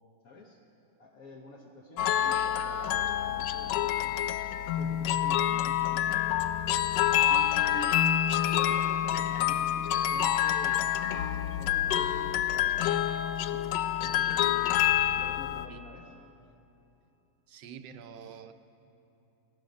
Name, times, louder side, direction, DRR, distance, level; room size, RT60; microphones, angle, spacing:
voice 1, 0.2-0.6 1.0-4.3 4.7-6.5 7.3-8.0 8.5-10.9 11.3-13.2 13.5-13.6 14.0-14.7 15.1-16.1, left 1 dB, 60° left, -1 dB, 1.5 m, -47 dB
sound 1, 2.0-15.7, left 11 dB, 80° left, 1.2 m, -27 dB
voice 2, 17.5-18.5, right 7 dB, 85° right, 8 dB, 1.4 m, -46 dB
18.0 x 15.0 x 5.3 m, 2.8 s
omnidirectional pair, 1.8 m